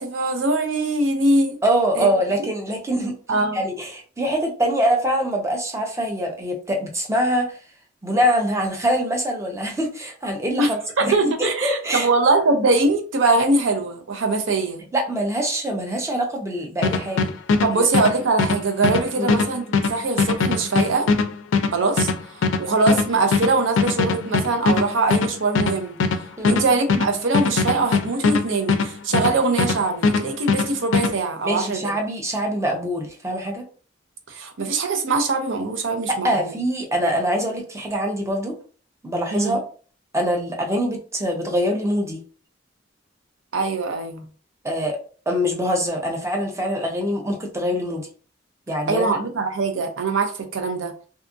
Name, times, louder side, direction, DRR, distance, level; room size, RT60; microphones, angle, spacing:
voice 1, 0.0-1.6 1.9-2.1 3.3-3.6 10.6-14.8 17.6-19.6 19.9-21.1 21.7-25.9 26.4-31.9 34.3-36.5 39.3-39.6 43.5-44.2 48.9-50.9, right 3 dB, 90° right, 0.6 m, -22 dB
voice 2, 1.6-7.5 8.0-12.1 14.9-17.3 17.7-17.8 19.2-19.3 26.4-26.6 31.4-33.7 36.1-38.6 39.0-39.6 40.1-42.2 44.6-45.0 45.3-48.1 48.7-49.1, equal, 15° right, 0.5 m, -24 dB
sound 1, 16.8-29.8 30.0-31.1, left 4 dB, 90° left, 0.4 m, -21 dB
2.7 x 2.3 x 2.5 m
head